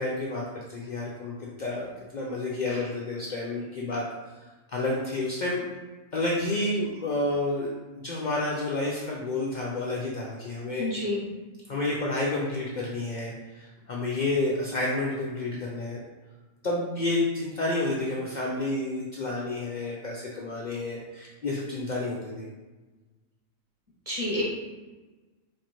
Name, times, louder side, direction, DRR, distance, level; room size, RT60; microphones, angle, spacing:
voice 1, 0.0-4.0 4.7-5.6 6.1-7.7 7.9-10.9 11.7-16.0 16.6-22.5, left 2 dB, 85° left, -4 dB, 0.4 m, -30 dB
voice 2, 10.8-11.2 24.1-24.4, left 2 dB, 25° right, -8 dB, 1.3 m, -29 dB
4.5 x 2.5 x 2.9 m, 1.2 s
omnidirectional pair, 1.4 m